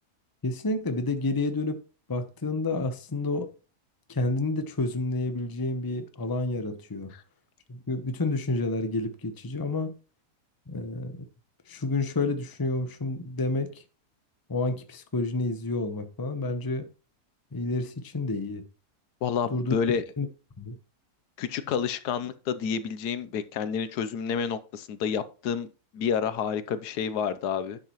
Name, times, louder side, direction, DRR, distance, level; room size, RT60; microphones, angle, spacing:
voice 1, 0.4-1.8 2.1-3.5 4.1-7.1 7.7-9.9 10.7-11.3 11.7-13.8 14.5-16.9 17.5-18.6 19.5-20.3 20.6-20.8, left 2 dB, 20° left, 0.7 m, -29 dB
voice 2, 19.2-20.0 21.4-25.7 25.9-27.8, left 7 dB, 80° left, 1.3 m, -29 dB
10.5 x 7.7 x 3.0 m
omnidirectional pair, 1.7 m